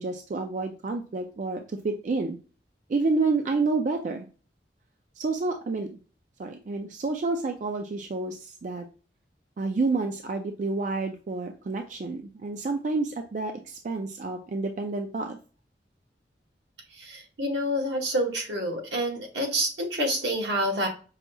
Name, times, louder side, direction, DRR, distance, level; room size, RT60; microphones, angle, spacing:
voice 1, 0.0-2.4 2.9-4.3 5.2-6.0 6.4-8.8 9.6-15.4, right 3 dB, 45° right, 5 dB, 0.3 m, -29 dB
voice 2, 17.0-20.9, equal, 80° right, 1 dB, 1.1 m, -28 dB
5.5 x 2.7 x 2.2 m, 0.35 s
head